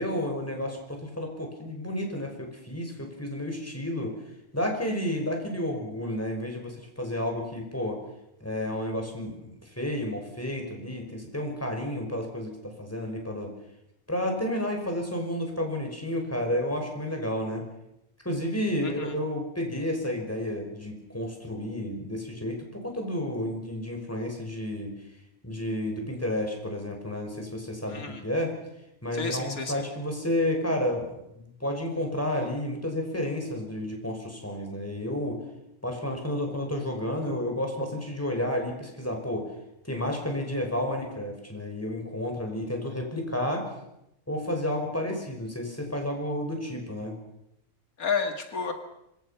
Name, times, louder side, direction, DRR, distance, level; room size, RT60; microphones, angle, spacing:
voice 1, 0.0-4.1 4.5-8.0 8.4-13.5 14.1-17.6 18.2-24.9 25.4-28.5 29.0-35.4 35.8-39.5 39.8-43.7 44.3-47.2, left 1 dB, 10° left, 2 dB, 5.7 m, -31 dB
voice 2, 18.8-19.1 27.9-28.2 29.1-29.8 48.0-48.7, left 5 dB, 85° left, 5 dB, 2.4 m, -31 dB
26.0 x 23.5 x 5.9 m, 0.84 s
omnidirectional pair, 1.5 m